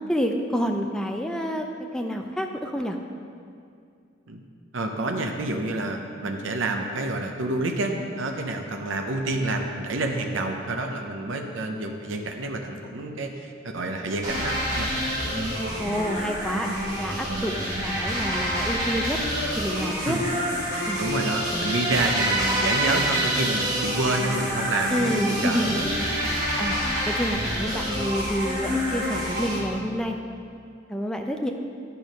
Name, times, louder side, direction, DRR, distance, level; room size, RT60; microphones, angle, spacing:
voice 1, 0.1-1.7 1.9-3.0 15.8-16.7 16.9-19.2 19.6-20.2 20.9-21.0 24.9-25.9 26.2-26.8 27.1-30.2 30.9-31.5, equal, 5° left, 3 dB, 0.5 m, -28 dB
voice 2, 4.7-14.9 20.0-20.2 21.0-25.7 26.1-26.2, right 2 dB, 80° right, 3 dB, 0.7 m, -28 dB
sound 1, 14.2-29.6, equal, 20° right, 1.7 m, -27 dB
11.0 x 4.6 x 5.2 m, 2.3 s
head